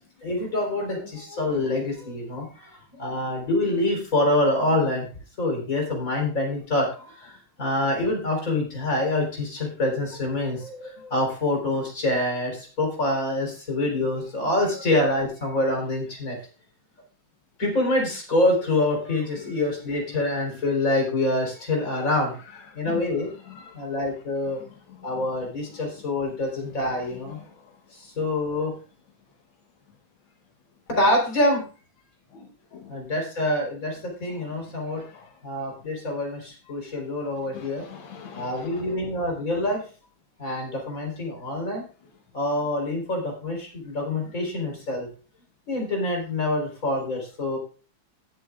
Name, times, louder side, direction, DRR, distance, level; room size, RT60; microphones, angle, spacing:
voice 1, 0.2-5.1 5.4-16.4 17.6-22.4 22.7-23.3 23.7-24.6 25.0-27.4 27.9-28.7 30.9-31.6 32.9-35.0 35.4-37.8 38.3-39.8 40.4-41.8 42.3-45.1 45.7-47.6, left 1 dB, 40° left, 4.4 m, -26 dB
voice 2, 22.7-23.0 23.4-23.8 24.6-25.1 27.4-27.6 32.3-32.9 34.3-34.4 35.0-35.3 37.5-38.8, left 7 dB, 90° left, 2.0 m, -43 dB
20.0 x 7.8 x 2.4 m
omnidirectional pair, 2.1 m